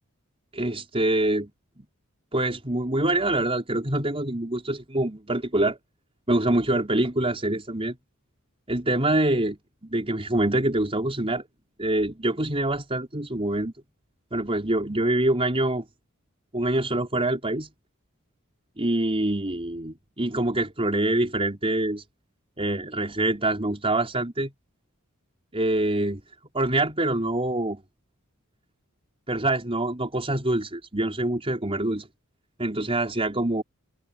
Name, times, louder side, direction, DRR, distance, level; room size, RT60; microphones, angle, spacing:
voice 1, 0.5-1.5 1.8-1.9 2.3-5.8 6.3-8.0 8.7-11.4 11.8-13.7 14.3-15.9 16.5-17.7 18.8-22.0 22.6-24.5 25.5-26.2 26.5-27.8 29.3-32.1 32.6-33.6, right 1 dB, 25° right, 5.5 m, -25 dB
head